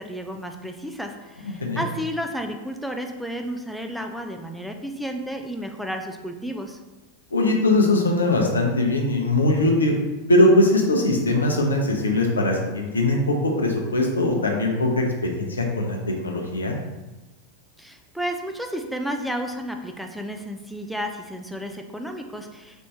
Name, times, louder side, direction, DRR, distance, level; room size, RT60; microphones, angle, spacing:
voice 1, 0.0-6.8 17.8-22.9, equal, ahead, 3 dB, 0.3 m, -32 dB
voice 2, 7.3-9.9 10.3-16.7, left 2 dB, 75° left, 1 dB, 0.6 m, -21 dB
4.2 x 2.7 x 3.2 m, 1.1 s
figure-of-eight pair, 90°, 0 cm